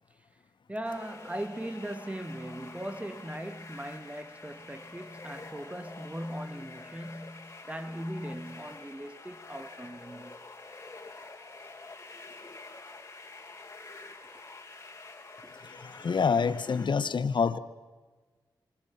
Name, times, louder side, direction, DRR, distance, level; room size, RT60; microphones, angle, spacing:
voice 1, 0.7-10.4 10.7-11.5, right 1 dB, 15° right, 1.5 m, -39 dB
sound 1, 0.9-16.9, left 3 dB, 30° left, 4.0 m, -48 dB
voice 2, 15.6-17.6, left 5 dB, 65° left, 1.0 m, -27 dB
28.0 x 23.5 x 5.8 m
cardioid pair, 70°, 9 cm